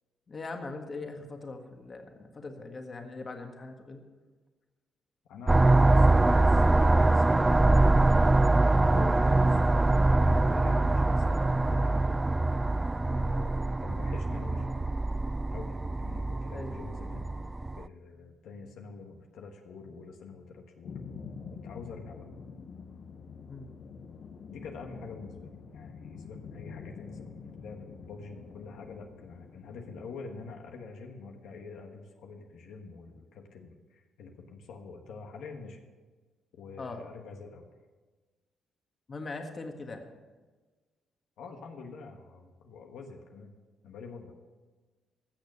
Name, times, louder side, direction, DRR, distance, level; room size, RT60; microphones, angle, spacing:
voice 1, 0.3-4.0 16.5-16.7 23.5-23.7 36.8-37.0 39.1-40.1, left 3 dB, 35° left, 4 dB, 1.6 m, -41 dB
voice 2, 5.2-7.9 8.9-9.6 10.3-12.2 13.1-14.8 15.5-17.3 17.7-21.0 21.5-22.3 24.5-35.8 36.5-37.7 41.4-43.5 43.8-44.4, left 4 dB, 80° left, 3 dB, 1.3 m, -46 dB
sound 1, 5.5-17.8, right 2 dB, 15° right, 0.4 m, -24 dB
sound 2, 20.8-30.6, left 5 dB, 55° left, 0.9 m, -46 dB
15.0 x 6.7 x 6.7 m, 1.3 s
cardioid pair, 90°, 0 cm